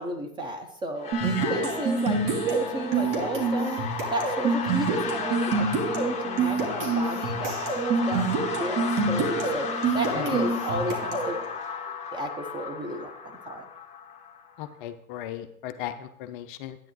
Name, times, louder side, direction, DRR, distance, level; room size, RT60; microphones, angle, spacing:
voice 1, 0.0-11.4 12.1-13.6, right 2 dB, 10° right, 3 dB, 0.5 m, -33 dB
sound 1, 1.0-14.7, left 6 dB, 15° left, 1.2 m, -34 dB
sound 2, 1.1-11.4, right 4 dB, 50° right, 2.4 m, -27 dB
voice 2, 14.6-16.8, left 12 dB, 35° left, 9 dB, 0.5 m, -37 dB
10.0 x 9.2 x 3.1 m, 0.73 s
hypercardioid pair, 115°, 45 cm